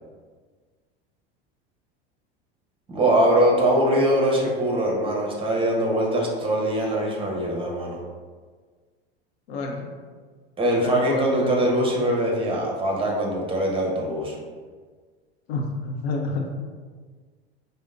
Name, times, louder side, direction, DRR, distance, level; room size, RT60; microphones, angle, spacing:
voice 1, 2.9-8.0 10.6-14.4, right 1 dB, 15° right, -1 dB, 0.9 m, -22 dB
voice 2, 9.5-9.9 10.8-11.6 15.5-16.4, left 3 dB, 70° left, 2 dB, 0.7 m, -29 dB
4.9 x 2.1 x 2.6 m, 1.5 s
hypercardioid pair, 80°, 32 cm